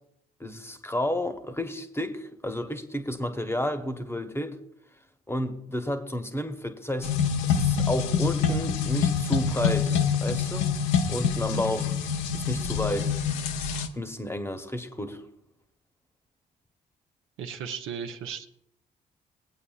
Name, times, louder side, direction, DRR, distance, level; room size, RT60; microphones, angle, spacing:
voice 1, 0.4-4.6 5.3-7.2 7.4-10.7 11.1-11.9 12.3-13.2 13.9-15.2, left 1 dB, 10° left, 1.0 m, -31 dB
sound 1, 7.0-13.9, left 7 dB, 80° left, 0.7 m, -26 dB
voice 2, 17.4-18.5, right 7 dB, 70° right, 0.8 m, -35 dB
18.0 x 8.5 x 2.4 m
hypercardioid pair, 45°, 21 cm